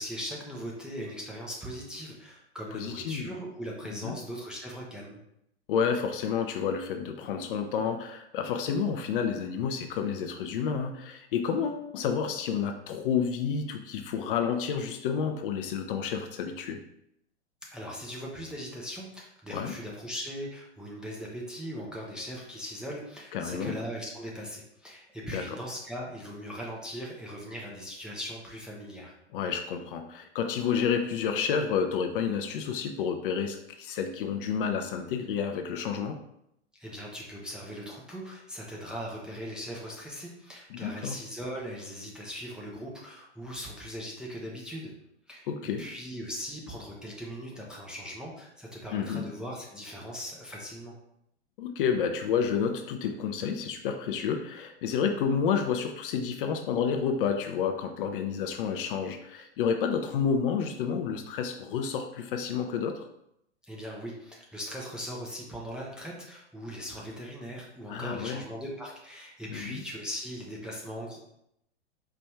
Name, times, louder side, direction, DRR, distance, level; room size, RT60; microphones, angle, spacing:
voice 1, 0.0-5.2 17.7-29.1 36.8-44.9 45.3-45.5 45.8-50.9 63.6-71.2, equal, ahead, -3 dB, 0.5 m, -39 dB
voice 2, 2.7-3.3 4.0-4.2 5.7-16.8 19.5-19.7 23.3-23.8 25.3-25.4 29.3-36.2 40.7-41.2 45.5-45.9 48.9-49.2 51.6-63.1 67.9-68.4 69.5-69.8, left 6 dB, 50° left, 6 dB, 0.5 m, -30 dB
4.5 x 2.5 x 3.3 m, 0.77 s
figure-of-eight pair, 105°, 35 cm